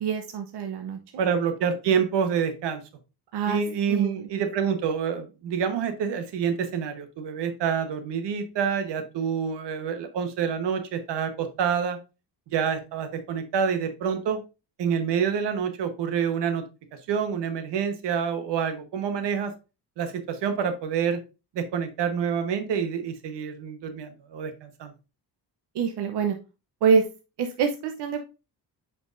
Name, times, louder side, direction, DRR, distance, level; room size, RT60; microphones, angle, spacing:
voice 1, 0.0-1.0 3.3-3.6 3.9-4.3 25.7-26.4 26.8-27.0 27.4-28.3, right 6 dB, 70° right, 5 dB, 0.9 m, -25 dB
voice 2, 1.2-2.8 3.5-12.0 12.5-14.4 14.8-16.6 17.1-19.5 20.0-21.2 21.5-24.9, right 7 dB, 90° right, 9 dB, 1.2 m, -27 dB
8.0 x 5.0 x 2.5 m, 0.29 s
cardioid pair, 140°, 41 cm